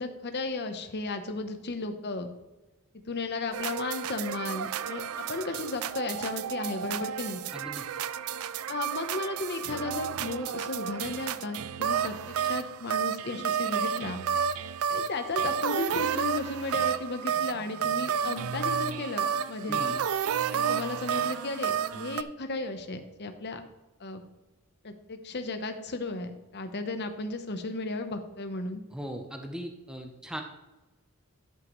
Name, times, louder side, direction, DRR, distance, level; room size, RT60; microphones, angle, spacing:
voice 1, 0.0-2.3 3.1-7.4 8.7-14.2 14.9-19.8 20.5-23.6 24.0-24.2 24.8-28.8, left 3 dB, 50° left, 7 dB, 1.0 m, -34 dB
sound 1, 3.5-22.2, right 8 dB, 75° right, 0.4 m, -31 dB
voice 2, 7.5-7.8 19.7-20.0 28.9-30.4, equal, 5° right, 3 dB, 0.8 m, -39 dB
12.0 x 7.6 x 3.2 m, 1.1 s
head